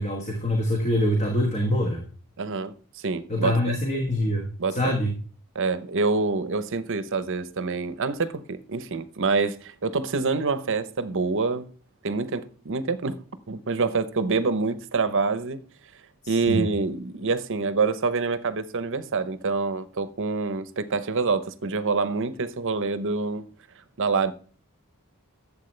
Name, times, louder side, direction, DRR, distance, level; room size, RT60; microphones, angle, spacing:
voice 1, 0.0-2.0 3.3-5.2 16.2-16.7, left 1 dB, 35° left, 1.4 m, -25 dB
voice 2, 2.4-2.7 3.0-3.7 4.6-5.0 5.5-11.7 12.0-15.6 16.3-23.4 24.0-24.3, right 4 dB, 60° right, 0.8 m, -26 dB
11.5 x 7.5 x 3.2 m
head